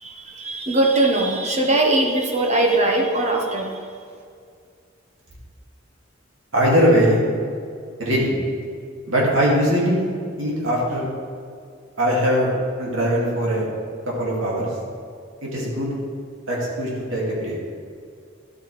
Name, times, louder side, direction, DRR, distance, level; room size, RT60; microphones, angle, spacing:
voice 1, 0.0-3.7, right 2 dB, 35° right, 1 dB, 1.1 m, -20 dB
voice 2, 6.5-7.2 8.0-8.3 9.1-10.0 10.4-11.1 12.0-12.5 12.8-13.7 14.1-14.7 15.4-15.9 16.5-17.6, equal, 80° right, -4 dB, 2.3 m, -20 dB
11.0 x 7.6 x 3.3 m, 2.2 s
head